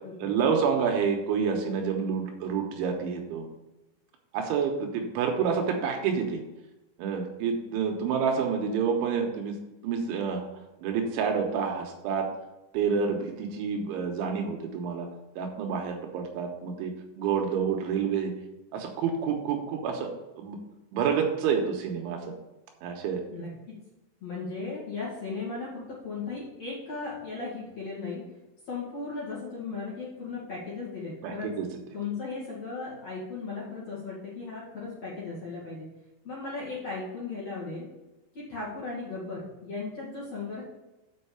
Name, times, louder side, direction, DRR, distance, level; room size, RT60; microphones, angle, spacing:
voice 1, 0.2-3.5 4.3-6.4 7.0-9.6 9.8-10.5 10.8-12.3 12.7-15.1 15.4-18.3 18.7-20.6 20.9-22.3 22.8-23.2 31.2-31.7, right 6 dB, 80° right, 3 dB, 3.3 m, -28 dB
voice 2, 23.3-23.8 24.2-28.2 28.7-31.5 31.9-35.9 36.2-37.9 38.3-40.6, left 4 dB, 45° left, -7 dB, 2.3 m, -36 dB
7.6 x 5.6 x 6.9 m, 1.0 s
omnidirectional pair, 5.6 m